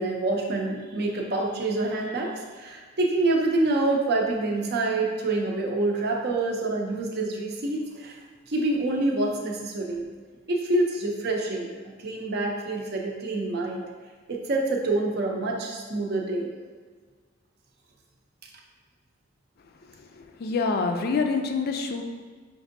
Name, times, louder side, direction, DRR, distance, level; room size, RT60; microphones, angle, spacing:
voice 1, 0.0-8.2 8.5-10.0 10.5-11.7 12.0-13.8 14.3-16.5, right 2 dB, 55° right, 0 dB, 0.5 m, -26 dB
voice 2, 20.0-22.0, left 4 dB, 50° left, 5 dB, 0.3 m, -27 dB
5.2 x 2.6 x 2.6 m, 1.5 s
head